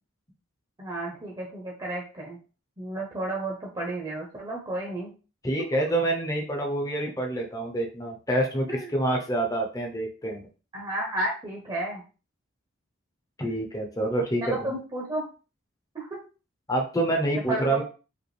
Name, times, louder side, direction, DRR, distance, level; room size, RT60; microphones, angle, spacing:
voice 1, 0.8-2.4 2.8-5.1 8.7-8.9 10.7-12.0 14.4-15.2 15.9-16.2 17.3-17.8, right 1 dB, 20° right, -3 dB, 0.9 m, -32 dB
voice 2, 5.4-10.4 13.4-14.7 16.7-17.8, right 1 dB, 15° left, 1 dB, 0.8 m, -27 dB
5.0 x 2.5 x 3.3 m, 0.34 s
head